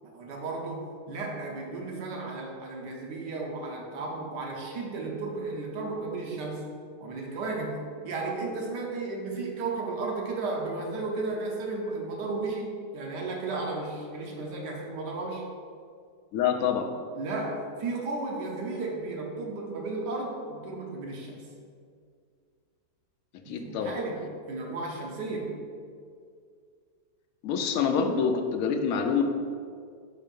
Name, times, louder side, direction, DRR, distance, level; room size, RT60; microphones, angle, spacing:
voice 1, 0.1-6.6 7.0-7.8 8.0-15.4 17.2-21.4 23.4-25.6, right 3 dB, 85° right, 0 dB, 1.5 m, -34 dB
voice 2, 16.3-16.9 23.5-24.0 27.4-29.2, left 6 dB, 70° left, 5 dB, 0.9 m, -26 dB
4.5 x 4.4 x 5.2 m, 2.2 s
omnidirectional pair, 1.8 m